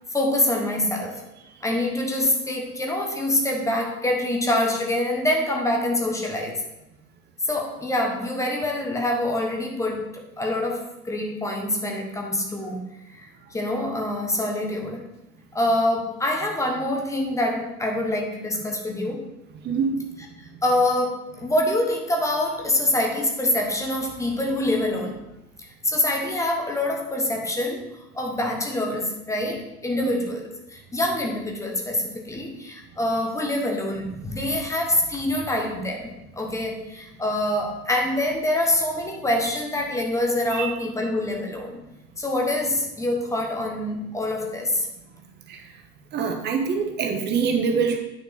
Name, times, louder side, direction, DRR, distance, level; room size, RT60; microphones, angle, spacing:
voice 1, 0.1-1.2 1.6-6.6 7.5-12.9 13.2-15.1 15.5-19.3 20.6-25.2 25.6-41.8 42.2-44.9, left 1 dB, 5° left, 1 dB, 1.2 m, -25 dB
voice 2, 46.1-48.0, right 6 dB, 20° right, 4 dB, 1.2 m, -24 dB
9.8 x 5.9 x 5.1 m, 0.90 s
figure-of-eight pair, 100°, 49 cm